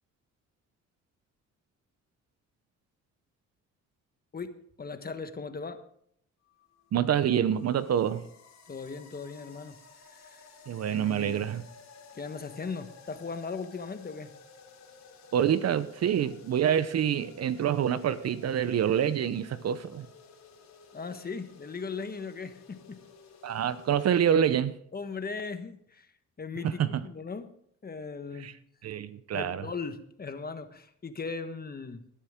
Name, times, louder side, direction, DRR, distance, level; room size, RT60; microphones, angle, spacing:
voice 1, 4.3-5.8 8.7-9.8 10.1-10.5 10.9-11.5 12.1-14.3 20.9-23.0 24.9-26.1 26.4-27.5 27.8-28.5 29.3-32.0, left 4 dB, 30° left, 1.3 m, -38 dB
sound 1, 6.4-24.4, left 5 dB, 65° left, 3.2 m, -54 dB
voice 2, 6.9-8.3 10.7-11.6 15.3-20.1 23.4-24.8 26.8-26.9 28.4-28.5 28.8-29.6, right 9 dB, 55° right, 0.8 m, -26 dB
20.0 x 10.0 x 3.7 m
cardioid pair, 90°, 30 cm